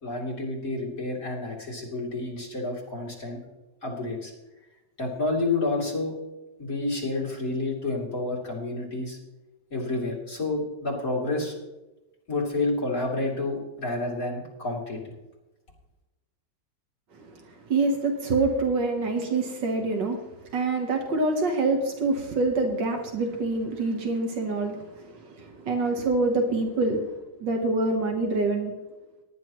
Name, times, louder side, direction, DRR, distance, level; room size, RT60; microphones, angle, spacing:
voice 1, 0.0-3.4 3.8-4.3 5.0-6.2 6.6-9.2 9.7-11.6 12.3-15.1, left 2 dB, 50° left, -4 dB, 3.5 m, -29 dB
voice 2, 17.7-20.2 20.5-27.0 27.4-28.7, right 3 dB, 85° right, 3 dB, 2.0 m, -26 dB
18.5 x 10.0 x 3.1 m, 1.0 s
omnidirectional pair, 1.9 m